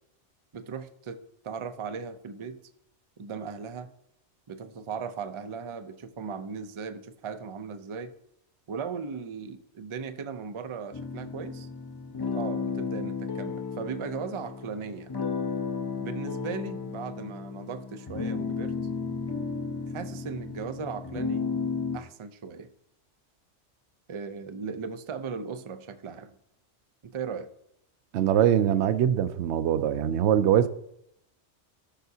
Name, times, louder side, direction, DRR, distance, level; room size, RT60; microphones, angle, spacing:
voice 1, 0.5-1.2 1.4-2.6 3.2-3.9 4.5-8.1 8.7-11.7 12.3-15.1 16.0-18.7 19.9-21.5 21.9-22.7 24.1-26.3 27.0-27.5, right 6 dB, 40° right, 0.4 m, -37 dB
sound 1, 10.9-22.0, left 5 dB, 25° left, 0.6 m, -33 dB
voice 2, 28.1-30.7, right 10 dB, 70° right, 0.8 m, -23 dB
14.0 x 5.8 x 2.7 m
omnidirectional pair, 1.2 m